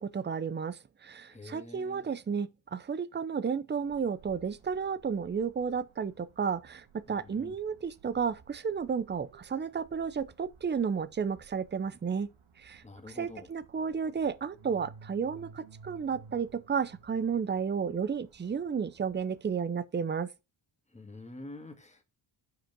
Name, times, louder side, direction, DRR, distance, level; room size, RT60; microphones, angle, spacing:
voice 1, 0.0-12.3 12.6-20.3, right 6 dB, 20° right, 0.6 m, -32 dB
voice 2, 1.3-2.1 7.1-7.5 12.8-13.5 20.9-22.0, left 2 dB, 15° left, 1.8 m, -47 dB
sound 1, 3.8-19.6, right 5 dB, 70° right, 1.7 m, -57 dB
6.1 x 5.0 x 6.7 m
cardioid pair, 85°, 49 cm